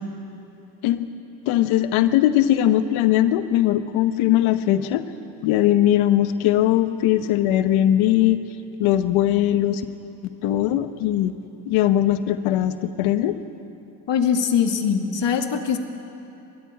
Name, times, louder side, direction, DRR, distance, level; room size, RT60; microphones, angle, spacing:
voice 1, 1.5-5.0 5.4-8.4 8.8-9.8 10.4-11.3 11.7-13.4, left 12 dB, 80° left, 11 dB, 1.0 m, -20 dB
voice 2, 14.1-15.8, left 7 dB, 60° left, 5 dB, 2.2 m, -22 dB
29.0 x 14.0 x 8.9 m, 2.8 s
hypercardioid pair, 40°, 48 cm